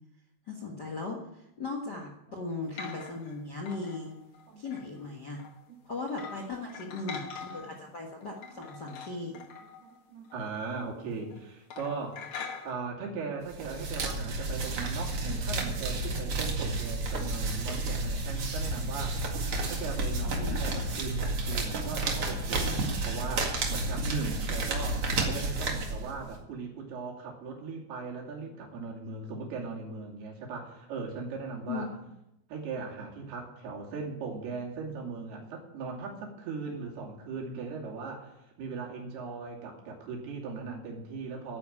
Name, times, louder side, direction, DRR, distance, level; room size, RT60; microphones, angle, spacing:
voice 1, 0.5-4.1 4.6-5.4 5.8-9.4 20.2-20.6 31.7-31.8, left 3 dB, 50° left, 2 dB, 1.2 m, -38 dB
sound 1, 2.6-3.4 3.7-5.0 5.4-5.5 6.1-7.9 8.2-10.6 10.8-11.0 11.2-11.4 11.7-12.7, left 6 dB, 80° left, 1.2 m, -44 dB
voice 2, 6.9-7.6 8.5-9.0 9.2-9.4 9.8-12.2 12.6-19.2 19.7-31.9 32.5-41.6, right 4 dB, 90° right, 0 dB, 4.7 m, -39 dB
sound 2, 13.5-26.4, right 2 dB, 45° right, 2.4 m, -31 dB
12.0 x 9.7 x 8.7 m, 0.86 s
omnidirectional pair, 4.4 m